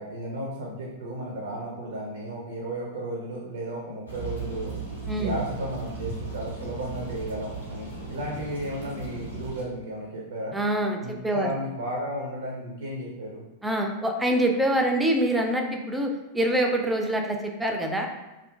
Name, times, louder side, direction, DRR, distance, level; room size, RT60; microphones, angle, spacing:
voice 1, 0.0-4.7 5.1-10.5 11.0-13.4, right 1 dB, 65° right, -2 dB, 0.4 m, -34 dB
sound 1, 4.1-9.6, right 4 dB, 90° right, 1.1 m, -36 dB
voice 2, 10.5-11.5 13.6-18.1, right 1 dB, 5° right, 2 dB, 0.3 m, -25 dB
2.6 x 2.4 x 2.3 m, 1.0 s
figure-of-eight pair, 90°, 0 cm